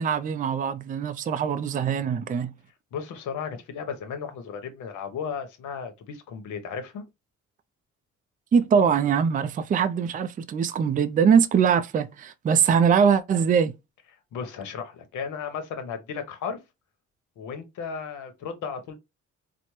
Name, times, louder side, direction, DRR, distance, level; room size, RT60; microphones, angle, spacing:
voice 1, 0.0-2.5 8.5-13.7, right 7 dB, 30° right, 0.3 m, -22 dB
voice 2, 2.9-7.0 14.3-16.6 17.4-18.9, left 6 dB, 80° left, 0.9 m, -35 dB
4.2 x 2.1 x 3.0 m
cardioid pair, 90°, 30 cm